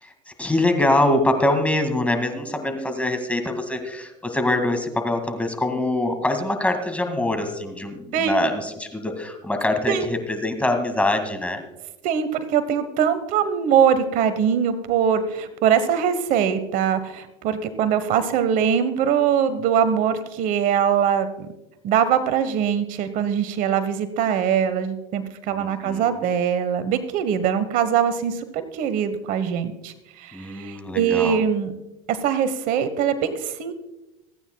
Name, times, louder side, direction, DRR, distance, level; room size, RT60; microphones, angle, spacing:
voice 1, 0.0-11.6 25.5-26.2 30.3-31.4, left 1 dB, 10° left, 6 dB, 2.0 m, -24 dB
voice 2, 8.1-8.4 9.9-10.1 12.0-21.5 21.8-31.7 32.1-33.7, right 8 dB, 60° right, 12 dB, 1.1 m, -22 dB
27.0 x 9.4 x 2.3 m, 0.97 s
supercardioid pair, 95°, 16 cm